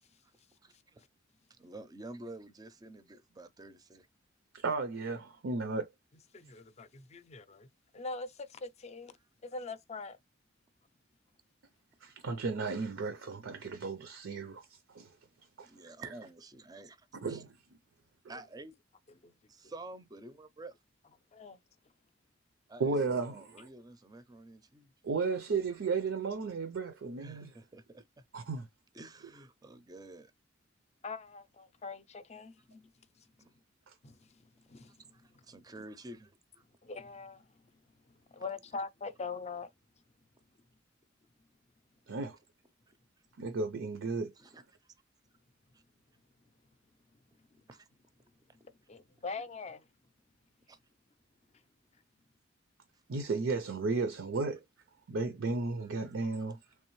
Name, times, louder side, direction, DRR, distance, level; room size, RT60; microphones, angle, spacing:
voice 1, 0.6-1.0 1.6-4.1 9.2-9.3 15.6-17.4 18.3-18.7 19.5-20.8 22.7-24.9 27.2-28.2 28.9-30.3 33.4-33.5 34.9-36.6 42.9-43.0 44.4-44.9 45.7-45.8 47.7-47.9 50.7-50.8 52.9-53.0, right 2 dB, 20° right, 0.5 m, -50 dB
voice 2, 4.5-5.9 12.0-15.2 15.6-15.7 16.0-16.1 17.2-17.6 18.2-18.3 22.8-23.5 25.0-27.5 28.3-28.7 33.9-34.0 42.1-42.4 43.4-44.3 53.1-54.6 55.1-56.6, right 4 dB, 80° right, 0.5 m, -34 dB
voice 3, 6.3-7.7 7.9-9.2 9.4-10.2 19.2-19.3 21.3-21.6 31.0-32.9 34.0-34.3 34.7-34.9 36.8-37.5 38.3-39.7 48.6-49.8, left 4 dB, 35° left, 0.5 m, -42 dB
3.3 x 3.3 x 3.1 m
head